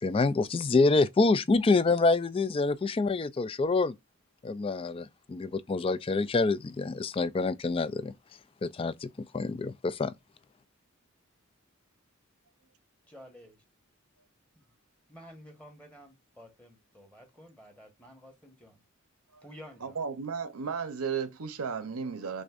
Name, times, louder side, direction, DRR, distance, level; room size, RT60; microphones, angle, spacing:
voice 1, 0.0-3.9 4.4-8.1 8.6-9.1 9.3-10.1, left 3 dB, 25° left, 0.3 m, -26 dB
voice 2, 13.1-13.6 14.6-14.7 15.1-18.8 19.4-20.0, equal, 5° left, 1.1 m, -51 dB
voice 3, 19.8-22.4, right 6 dB, 85° right, 0.8 m, -34 dB
6.4 x 2.6 x 2.5 m
head